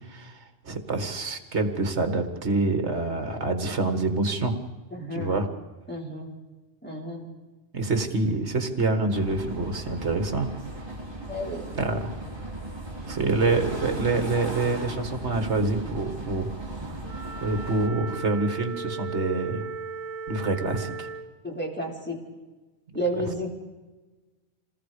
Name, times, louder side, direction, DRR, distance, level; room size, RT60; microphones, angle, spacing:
voice 1, 0.1-4.6 5.1-5.5 7.7-10.5 11.7-12.2 13.0-17.0 17.4-19.7 20.3-21.1, right 3 dB, 55° right, 7 dB, 2.1 m, -26 dB
voice 2, 4.9-5.4 5.9-6.4 6.8-7.3 11.3-11.7 21.4-22.2 22.9-23.6, equal, 5° left, -2 dB, 4.1 m, -32 dB
sound 1, 9.1-17.9, right 2 dB, 20° right, 2.5 m, -37 dB
Wind instrument woodwind instrument, 17.0-21.3, right 4 dB, 80° right, 1.3 m, -36 dB
27.5 x 19.5 x 5.1 m, 1.2 s
omnidirectional pair, 1.4 m